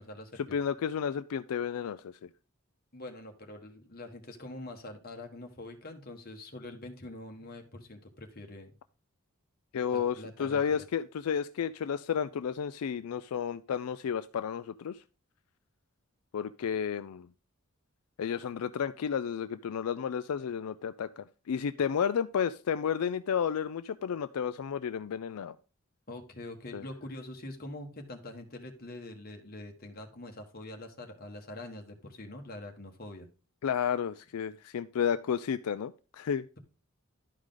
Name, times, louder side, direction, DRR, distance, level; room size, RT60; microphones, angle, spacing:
voice 1, 0.0-0.6 2.9-8.7 9.9-10.8 26.1-33.3, left 1 dB, 40° left, 4 dB, 1.5 m, -44 dB
voice 2, 0.5-2.3 9.7-15.0 16.3-17.3 18.2-25.6 26.7-26.8 33.6-36.4, left 7 dB, 85° left, 13 dB, 0.4 m, -32 dB
12.0 x 4.8 x 3.8 m, 0.34 s
head